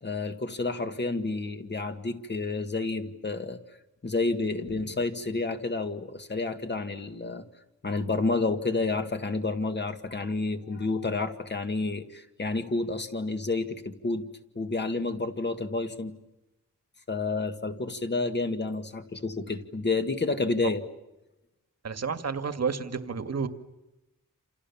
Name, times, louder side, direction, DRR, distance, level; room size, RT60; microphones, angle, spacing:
voice 1, 0.0-3.6 4.0-7.4 7.8-14.3 14.6-16.1 17.1-20.8, left 3 dB, 35° left, 6 dB, 1.9 m, -30 dB
voice 2, 21.8-23.5, right 5 dB, 50° right, 9 dB, 1.9 m, -30 dB
28.5 x 28.5 x 7.2 m, 0.96 s
wide cardioid pair, 170°, 32 cm